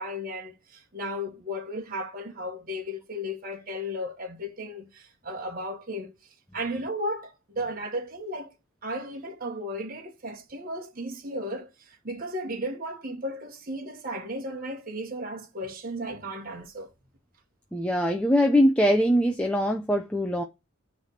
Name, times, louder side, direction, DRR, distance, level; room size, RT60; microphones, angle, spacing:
voice 1, 0.0-8.5 8.8-16.9, equal, 40° right, 1.5 m, -35 dB
voice 2, 17.7-20.4, equal, 5° left, 0.6 m, -22 dB
9.5 x 3.5 x 6.4 m
head